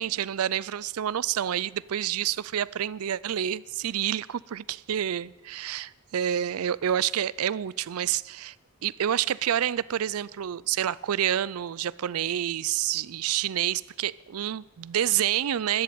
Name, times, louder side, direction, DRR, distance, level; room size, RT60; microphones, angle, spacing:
voice 1, 0.0-8.5 8.8-15.8, right 10 dB, 80° right, 0.4 m, -28 dB
13.0 x 11.5 x 8.7 m
head